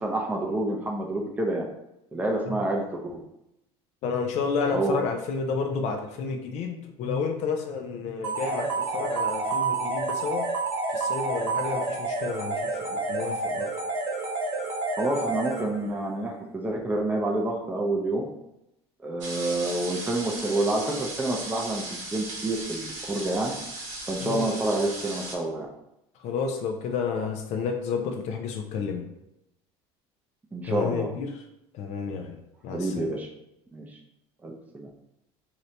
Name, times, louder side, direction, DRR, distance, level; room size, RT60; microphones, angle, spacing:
voice 1, 0.0-1.6 2.1-3.2 4.7-5.0 15.0-18.2 19.0-23.5 24.1-25.7 30.5-31.1 32.7-33.3 33.7-33.8 34.4-34.9, right 2 dB, 10° right, 0 dB, 0.6 m, -28 dB
voice 2, 4.0-10.5 10.9-13.7 24.2-24.5 26.2-29.1 30.7-31.3 31.7-33.1, left 5 dB, 55° left, 4 dB, 0.5 m, -31 dB
sound 1, 8.2-16.0, right 3 dB, 80° right, 1.0 m, -29 dB
sound 2, 19.2-25.4, right 2 dB, 60° right, 1.0 m, -37 dB
2.8 x 2.7 x 3.2 m, 0.85 s
supercardioid pair, 100°, 14 cm